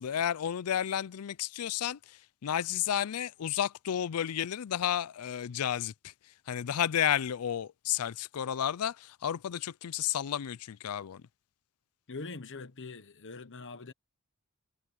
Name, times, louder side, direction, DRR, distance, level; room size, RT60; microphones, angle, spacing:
voice 1, 0.0-6.1 6.5-11.2, left 10 dB, 80° left, 0.4 m, -32 dB
voice 2, 12.1-13.9, left 3 dB, 60° left, 1.1 m, -43 dB
head